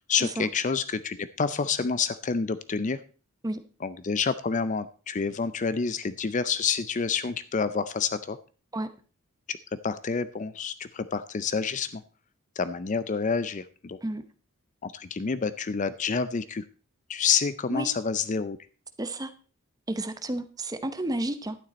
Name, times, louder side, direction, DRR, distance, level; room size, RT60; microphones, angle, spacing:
voice 1, 0.1-3.0 3.8-8.4 9.5-9.6 9.8-12.0 12.6-14.0 14.8-16.6 17.1-18.6, left 5 dB, 35° left, 14 dB, 0.4 m, -28 dB
voice 2, 19.0-19.3 19.9-21.6, right 1 dB, 15° right, 9 dB, 0.8 m, -31 dB
11.5 x 9.4 x 4.2 m, 0.38 s
head